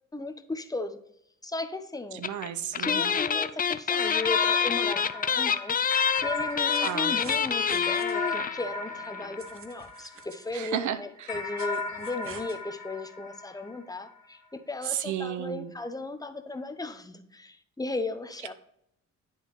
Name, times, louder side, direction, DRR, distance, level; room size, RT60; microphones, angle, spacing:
voice 1, 0.1-1.0 1.4-2.2 2.8-5.7 6.2-18.5, left 2 dB, 10° left, 9 dB, 0.8 m, -36 dB
voice 2, 2.1-3.1 6.8-7.2 10.5-11.3 14.8-15.7, right 10 dB, 70° right, 12 dB, 0.7 m, -33 dB
sound 1, 2.2-2.5 2.7-8.6 8.9-9.0 9.2-9.3, left 7 dB, 30° left, 0.4 m, -26 dB
sound 2, 4.0-10.6 11.3-14.0, left 3 dB, 70° left, 2.1 m, -36 dB
sound 3, 5.3-5.4 6.2-8.2 9.4-10.5 11.3-12.6, right 5 dB, 45° right, 0.9 m, -47 dB
10.5 x 3.9 x 3.1 m, 0.73 s
supercardioid pair, 70°, 31 cm